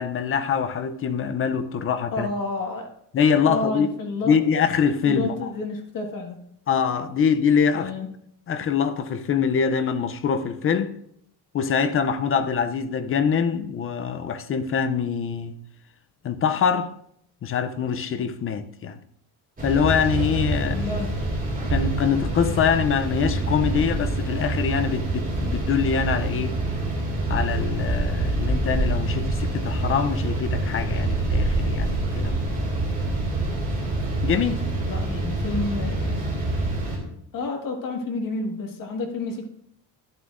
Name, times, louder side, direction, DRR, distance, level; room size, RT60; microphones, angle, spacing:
voice 1, 0.0-2.3 3.1-3.9 4.3-5.5 6.7-7.9 8.5-10.9 11.5-15.5 16.2-16.9 17.4-19.0 19.6-20.8 21.7-26.6 27.3-32.5 34.2-34.6, left 6 dB, 30° left, 0.5 m, -24 dB
voice 2, 2.1-2.9 3.4-4.4 5.0-6.4 7.7-8.1 20.6-21.1 34.6-36.2 37.3-39.5, left 3 dB, 50° left, 1.7 m, -30 dB
sound 1, 19.6-37.0, right 2 dB, 20° right, 2.7 m, -26 dB
11.5 x 11.5 x 2.5 m
cardioid pair, 160°, 42 cm